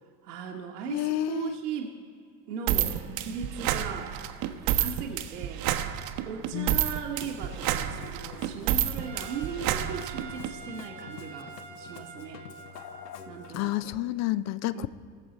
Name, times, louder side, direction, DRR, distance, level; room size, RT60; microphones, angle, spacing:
voice 1, 0.2-2.0 2.5-4.2 4.6-5.6 6.2-12.4 13.3-13.9 14.7-14.9, right 7 dB, 70° right, 0 dB, 1.3 m, -38 dB
voice 2, 0.9-1.6 6.5-6.8 13.6-14.9, left 14 dB, 35° left, 17 dB, 0.5 m, -30 dB
sound 1, 2.7-10.5, right 11 dB, 45° right, 0.9 m, -29 dB
Musical instrument, 7.1-13.8, left 8 dB, 75° left, 0.8 m, -46 dB
Trumpet, 9.0-13.6, right 4 dB, 85° right, 1.7 m, -46 dB
19.5 x 7.3 x 4.0 m, 2.3 s
figure-of-eight pair, 70°, 49 cm